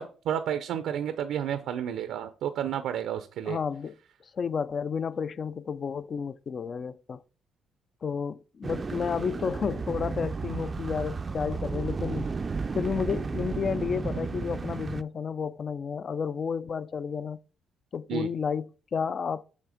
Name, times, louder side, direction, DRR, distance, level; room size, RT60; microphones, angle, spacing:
voice 1, 0.0-3.6 18.1-18.3, right 9 dB, 85° right, 0.5 m, -31 dB
voice 2, 3.5-4.0 4.3-7.2 8.0-12.3 12.8-17.4 17.9-19.4, left 6 dB, 45° left, 0.4 m, -31 dB
sound 1, 8.6-15.0, right 4 dB, 30° right, 0.4 m, -33 dB
7.2 x 3.4 x 4.9 m
cardioid pair, 90°, 0 cm